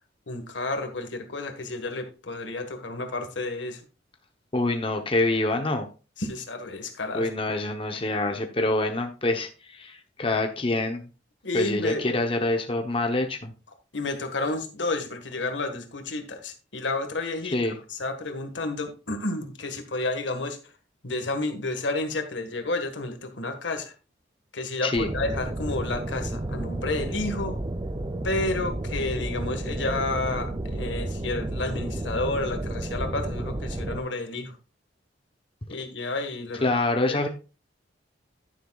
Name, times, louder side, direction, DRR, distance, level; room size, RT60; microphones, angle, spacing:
voice 1, 0.3-3.8 6.2-7.3 11.4-12.1 13.9-17.6 17.9-20.7 21.0-23.9 24.5-27.6 28.2-34.6 35.7-36.7 37.0-37.2, left 2 dB, 80° left, 6 dB, 1.6 m, -31 dB
voice 2, 4.5-5.9 7.1-11.0 11.5-13.5 17.5-17.8 24.8-25.1 36.6-37.3, left 2 dB, 30° left, 5 dB, 0.9 m, -26 dB
sound 1, 25.0-34.0, right 1 dB, 25° right, 0.5 m, -32 dB
10.0 x 9.9 x 2.4 m, 0.32 s
head